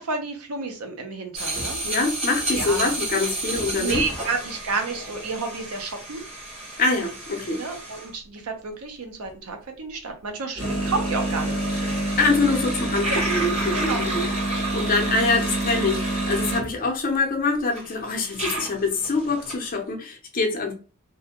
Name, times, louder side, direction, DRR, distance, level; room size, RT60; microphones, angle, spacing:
voice 1, 0.0-1.8 2.5-3.0 3.8-6.2 7.6-11.6 13.1-13.2 13.7-14.0, right 4 dB, 80° right, 0.7 m, -30 dB
sound 1, 1.3-8.1 10.6-16.8 17.4-17.5 17.7-19.5, right 1 dB, 30° right, 1.1 m, -28 dB
voice 2, 1.8-4.0 6.8-7.6 12.2-20.7, left 3 dB, 40° left, 0.6 m, -25 dB
2.5 x 2.2 x 2.7 m
head